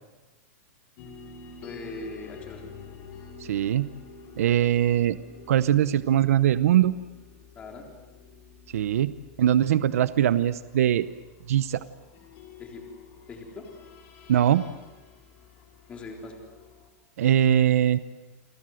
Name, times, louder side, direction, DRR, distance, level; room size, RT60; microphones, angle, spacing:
sound 1, 1.0-16.9, left 5 dB, 35° left, 5.6 m, -49 dB
voice 1, 1.6-2.7 7.6-7.9 12.6-12.8 13.3-13.7 15.9-16.4, left 2 dB, 15° left, 1 dB, 3.8 m, -40 dB
voice 2, 3.4-3.9 4.4-5.2 5.5-7.0 8.7-9.1 9.4-11.1 11.5-11.8 14.3-14.6 17.2-18.0, right 11 dB, 70° right, 14 dB, 0.9 m, -21 dB
29.5 x 22.0 x 7.8 m, 1.2 s
supercardioid pair, 175°, 8 cm